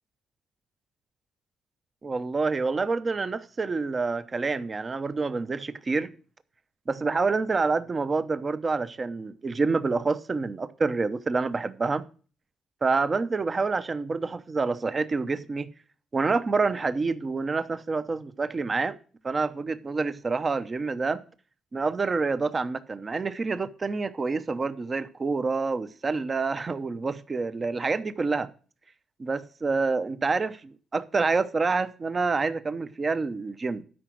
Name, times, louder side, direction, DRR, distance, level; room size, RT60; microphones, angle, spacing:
voice 1, 2.0-6.1 6.9-12.0 12.8-15.7 16.1-19.0 19.2-21.2 21.7-28.5 29.2-33.8, right 4 dB, 30° right, 0.8 m, -27 dB
12.5 x 5.0 x 6.1 m
cardioid pair, 90°, 0 cm